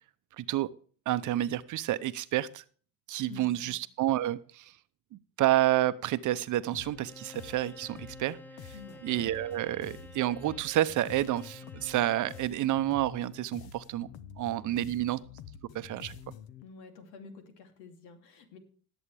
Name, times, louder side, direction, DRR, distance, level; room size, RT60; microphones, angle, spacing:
voice 1, 0.4-0.7 1.1-2.6 3.1-4.7 5.4-8.7 9.0-14.1 14.4-15.2 15.7-16.2, right 14 dB, 50° right, 14 dB, 0.8 m, -29 dB
voice 2, 3.3-3.7 8.7-9.1 14.6-15.0 16.6-18.6, left 5 dB, 90° left, 5 dB, 3.0 m, -50 dB
sound 1, 6.7-16.6, left 9 dB, 65° left, 1.1 m, -49 dB
Bowed string instrument, 6.9-12.6, right 1 dB, 5° left, 0.7 m, -51 dB
18.5 x 8.0 x 3.4 m, 0.43 s
cardioid pair, 125°, 39 cm